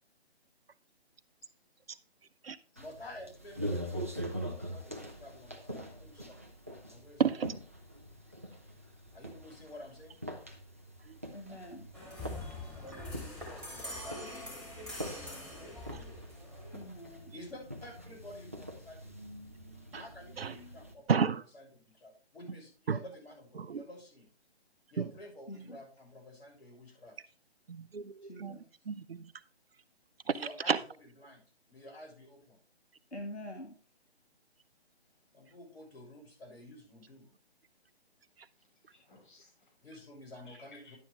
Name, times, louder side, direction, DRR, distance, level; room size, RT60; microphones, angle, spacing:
voice 1, 2.8-6.4 6.9-7.4 9.1-10.2 12.7-14.7 17.3-19.1 20.0-21.1 21.5-24.3 24.9-27.1 30.2-30.8 31.2-31.4 31.7-32.6 35.3-37.3 39.8-41.0, left 1 dB, 65° left, 6.4 m, -51 dB
sound 1, 2.8-20.9, equal, 15° right, 0.4 m, -44 dB
voice 2, 7.2-7.5 11.1-11.2 19.9-20.0 20.4-20.5 21.1-21.4 22.9-23.0 23.6-23.8 25.0-25.1 27.7-28.6 28.9-29.3 30.7-30.8, right 6 dB, 60° right, 0.7 m, -31 dB
voice 3, 11.3-11.9 16.7-17.3 25.5-25.8 28.2-28.7 33.1-33.8, left 1 dB, 90° left, 2.3 m, -45 dB
sound 2, 11.9-16.9, left 1 dB, 5° left, 2.8 m, -44 dB
voice 4, 38.6-39.7 40.4-41.0, left 3 dB, 50° left, 6.1 m, -62 dB
11.0 x 8.5 x 3.3 m
figure-of-eight pair, 145°, 33 cm